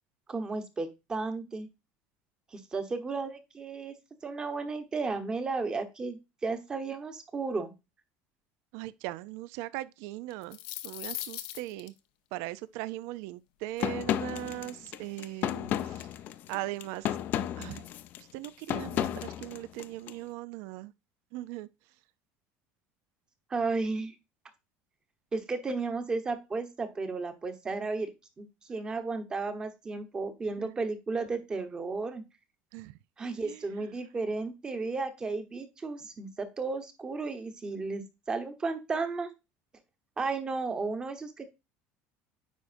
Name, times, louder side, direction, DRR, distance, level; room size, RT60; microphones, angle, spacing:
voice 1, 0.3-1.7 2.5-3.9 4.2-7.7 23.5-24.1 25.3-28.1 28.4-32.2 33.2-39.3 40.2-41.4, right 3 dB, 15° right, 1.1 m, -34 dB
voice 2, 8.7-10.6 10.8-11.9 12.3-16.1 16.5-17.2 17.6-17.9 18.3-20.9 21.3-21.7 30.6-30.8 32.7-33.0 33.4-33.9, right 16 dB, 70° right, 0.4 m, -39 dB
sound 1, 10.3-11.9, left 15 dB, 90° left, 0.8 m, -39 dB
sound 2, 13.8-20.1, left 11 dB, 45° left, 0.5 m, -33 dB
9.3 x 4.9 x 2.6 m
cardioid pair, 165°, 5 cm